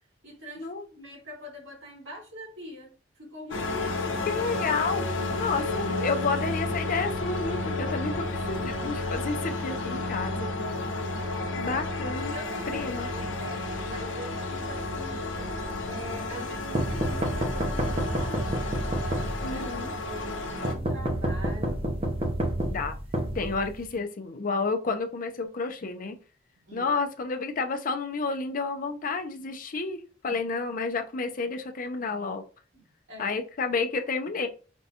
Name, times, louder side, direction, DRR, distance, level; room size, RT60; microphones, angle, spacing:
voice 1, 0.2-4.4 11.4-11.8 12.3-15.5 15.8-19.7 20.0-21.8 26.6-26.9 30.2-30.4 32.7-33.4, equal, 85° right, 2.1 m, -44 dB
sound 1, 3.5-20.7, left 2 dB, 75° left, 0.8 m, -32 dB
voice 2, 4.3-5.0 5.3-10.5 11.6-12.3 12.7-13.1 16.3-16.5 19.4-19.9 22.6-22.9 23.3-26.2 26.7-32.4 33.2-34.5, left 4 dB, 45° left, 0.5 m, -30 dB
sound 2, 16.8-19.7 20.6-24.0, right 1 dB, 30° right, 0.6 m, -29 dB
5.2 x 2.3 x 2.8 m
head